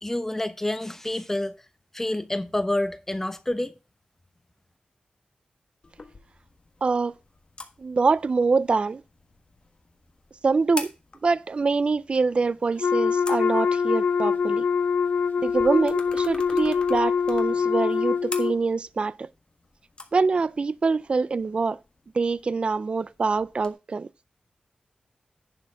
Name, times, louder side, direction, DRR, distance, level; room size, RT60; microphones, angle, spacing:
voice 1, 0.0-1.5 1.9-3.7, left 1 dB, 15° left, 0.9 m, -28 dB
sound 1, 5.8-23.7, left 3 dB, 40° left, 1.4 m, -46 dB
voice 2, 6.8-7.1 7.8-9.0 10.4-10.9 11.2-14.7 15.4-19.3 20.1-21.8 22.1-24.1, right 4 dB, 45° right, 0.4 m, -24 dB
Wind instrument woodwind instrument, 12.8-18.6, left 6 dB, 90° left, 0.5 m, -24 dB
10.5 x 4.4 x 5.7 m
wide cardioid pair, 135°, 3 cm